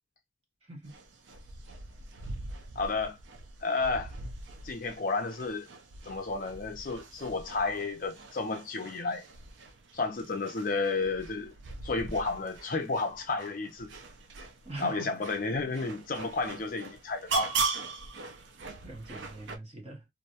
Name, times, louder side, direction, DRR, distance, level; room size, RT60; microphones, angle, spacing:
voice 1, 0.6-0.9 14.6-15.3 15.6-15.9 18.8-20.1, right 2 dB, 30° right, 0.8 m, -43 dB
sound 1, 0.9-19.6, right 4 dB, 65° right, 0.4 m, -40 dB
voice 2, 2.8-3.2 3.6-4.1 4.6-5.7 6.1-9.2 9.9-11.5 11.8-13.9 14.8-17.5, left 3 dB, 45° left, 0.5 m, -32 dB
2.5 x 2.2 x 2.7 m
head